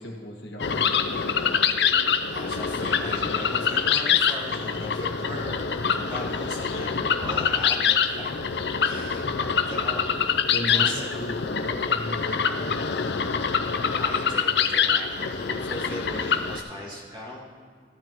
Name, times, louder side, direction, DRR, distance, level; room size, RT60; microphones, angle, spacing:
voice 1, 0.0-1.6 9.2-9.5 9.9-10.0 10.5-13.0, equal, 85° left, 1 dB, 1.7 m, -36 dB
sound 1, 0.6-16.6, left 6 dB, 65° left, 0.5 m, -25 dB
voice 2, 2.3-8.5 8.8-10.1 10.7-11.2 13.8-17.5, equal, 25° right, -4 dB, 2.1 m, -38 dB
15.0 x 12.0 x 3.0 m, 2.1 s
head